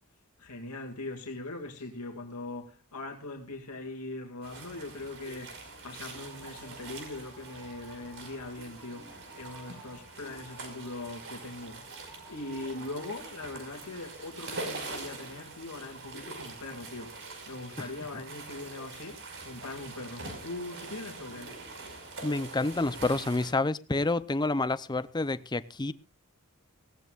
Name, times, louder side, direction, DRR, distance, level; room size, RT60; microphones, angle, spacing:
voice 1, 0.4-11.8 12.3-21.5, left 2 dB, 90° left, 2.4 m, -41 dB
sound 1, 4.4-23.5, right 3 dB, 60° right, 5.5 m, -44 dB
sound 2, 6.0-16.6 17.1-17.8, right 2 dB, 10° right, 7.8 m, -57 dB
voice 2, 22.2-25.9, left 2 dB, 20° left, 0.6 m, -29 dB
19.5 x 18.0 x 2.5 m
head